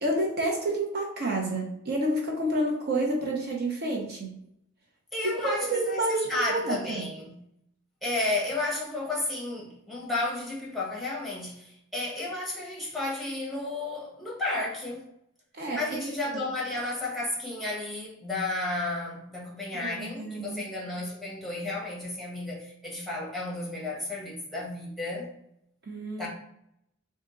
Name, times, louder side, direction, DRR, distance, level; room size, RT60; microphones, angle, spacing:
voice 1, 0.0-4.4 5.2-7.0 15.5-16.0 19.8-20.6 25.9-26.3, right 1 dB, 50° right, 0 dB, 0.7 m, -29 dB
voice 2, 5.1-7.4 8.0-15.1 15.7-25.3 26.2-26.3, left 2 dB, ahead, -5 dB, 1.2 m, -32 dB
3.6 x 2.7 x 3.7 m, 0.76 s
head